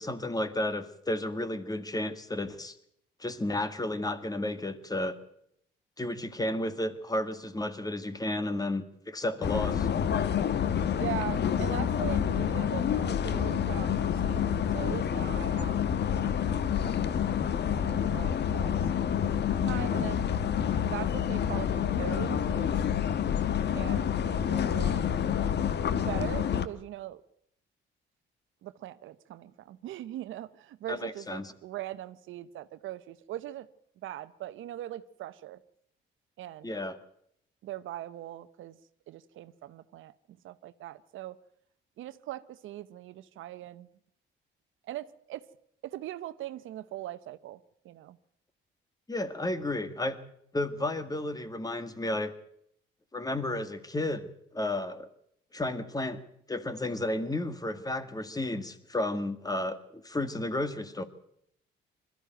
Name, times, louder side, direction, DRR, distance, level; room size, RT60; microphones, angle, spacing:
voice 1, 0.0-2.8 3.2-5.2 6.0-9.9 30.9-31.5 36.6-37.0 49.1-50.2 50.5-52.3 53.1-55.1 55.5-56.2 56.5-61.0, left 1 dB, 20° left, 12 dB, 1.9 m, -32 dB
sound 1, 9.4-26.7, left 8 dB, 60° left, 1.2 m, -28 dB
voice 2, 11.0-14.5 14.7-15.8 16.2-16.4 16.8-17.0 17.3-18.9 19.6-20.2 20.9-22.7 23.7-25.0 25.9-27.2 28.6-33.7 34.0-35.6 36.4-36.7 37.6-38.8 39.1-40.1 40.4-41.4 42.0-43.9 44.9-45.4 45.8-47.6 47.8-48.2, right 13 dB, 80° right, 14 dB, 0.9 m, -40 dB
21.5 x 14.0 x 9.1 m, 0.72 s
cardioid pair, 90°, 20 cm